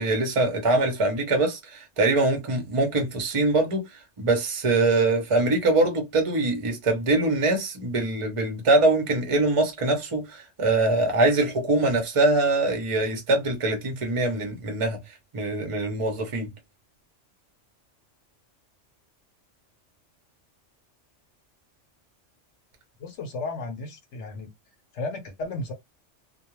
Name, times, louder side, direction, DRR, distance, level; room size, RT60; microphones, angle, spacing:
voice 1, 0.0-3.8 4.2-15.0 15.3-16.5, right 2 dB, 30° right, 0.7 m, -23 dB
voice 2, 23.0-24.5 24.9-25.7, left 2 dB, 70° left, 1.0 m, -34 dB
2.3 x 2.2 x 3.0 m
omnidirectional pair, 1.2 m